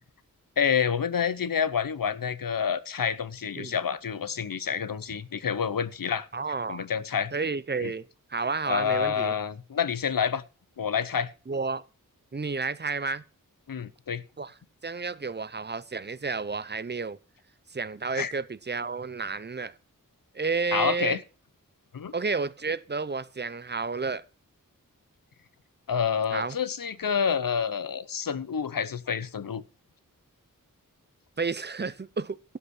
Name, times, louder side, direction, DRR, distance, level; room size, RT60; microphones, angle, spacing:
voice 1, 0.6-6.3 6.7-7.3 7.8-7.9 8.7-10.4 10.8-11.3 13.7-14.2 18.2-18.3 20.7-21.2 21.9-22.1 25.9-29.6, left 7 dB, 80° left, 0.9 m, -28 dB
voice 2, 6.3-6.9 7.3-9.3 11.5-11.8 12.3-13.2 14.4-14.5 14.8-17.2 17.7-19.7 20.3-21.2 22.1-24.2 26.3-26.6 31.4-32.4, right 4 dB, 30° right, 0.7 m, -31 dB
13.0 x 5.7 x 8.0 m
wide cardioid pair, 70°, 33 cm